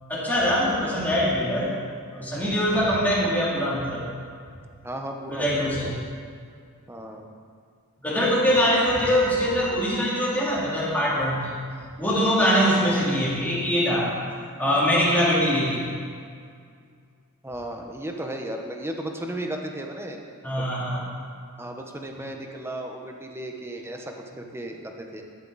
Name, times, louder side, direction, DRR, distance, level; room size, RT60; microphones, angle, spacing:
voice 1, 0.1-1.7 2.1-4.0 5.3-6.0 8.0-11.5 12.0-14.1 14.6-15.9 20.4-21.0, equal, 10° left, -7 dB, 2.9 m, -23 dB
voice 2, 4.8-6.0 6.9-7.3 12.8-13.0 17.4-20.2 20.5-20.7 21.6-25.2, right 1 dB, 10° right, 2 dB, 1.0 m, -35 dB
13.0 x 10.5 x 4.1 m, 2.2 s
head